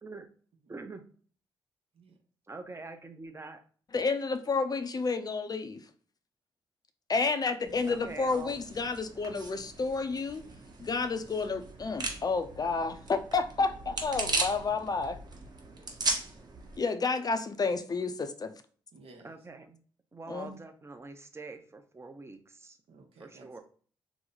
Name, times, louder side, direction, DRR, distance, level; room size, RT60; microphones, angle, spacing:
voice 1, 0.7-1.0 2.5-3.6 7.9-8.6 19.2-19.8 20.1-22.8 23.2-23.6, right 3 dB, 25° right, 6 dB, 0.7 m, -44 dB
voice 2, 3.9-5.8 7.1-10.4 10.8-15.2 16.8-18.5 20.3-20.6, left 4 dB, 40° left, 9 dB, 0.5 m, -30 dB
sound 1, 7.6-16.8, right 3 dB, 40° right, 1.1 m, -38 dB
voice 3, 15.6-16.0 18.9-19.3 22.9-23.6, right 3 dB, 70° right, 3 dB, 0.9 m, -55 dB
3.0 x 2.0 x 3.8 m, 0.44 s
supercardioid pair, 55°, 10 cm